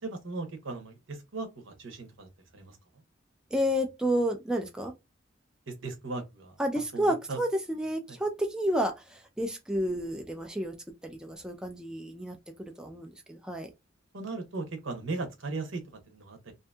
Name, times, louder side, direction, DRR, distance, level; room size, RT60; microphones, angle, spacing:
voice 1, 0.0-2.8 5.7-6.6 6.9-7.4 8.1-8.2 14.1-16.5, right 3 dB, 80° right, 0.9 m, -38 dB
voice 2, 3.5-4.9 6.6-10.7 11.0-13.7, equal, 5° right, 0.3 m, -30 dB
2.6 x 2.6 x 2.3 m
head